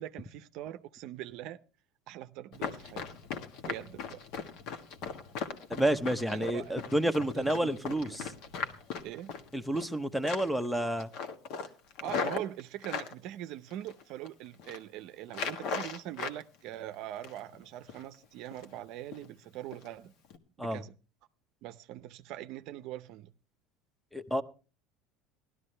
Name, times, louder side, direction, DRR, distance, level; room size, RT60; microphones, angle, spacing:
voice 1, 0.0-1.6 2.1-3.1 3.7-4.2 6.3-6.7 7.3-8.3 9.0-9.3 12.0-20.1 20.6-21.0 21.6-23.3, right 13 dB, 60° right, 0.6 m, -42 dB
Run, 2.5-9.9 10.2-10.7 11.0-13.1 13.7-14.3 14.5-14.8 15.3-16.4 16.7-17.5 17.9-18.1 18.5-18.8 19.1-19.3 19.7-19.9 20.2-20.4, left 5 dB, 60° left, 1.4 m, -38 dB
voice 2, 5.7-8.3 9.5-11.1 20.6-20.8 24.1-24.4, right 1 dB, ahead, 0.8 m, -30 dB
16.5 x 12.5 x 3.3 m
supercardioid pair, 120°, 0 cm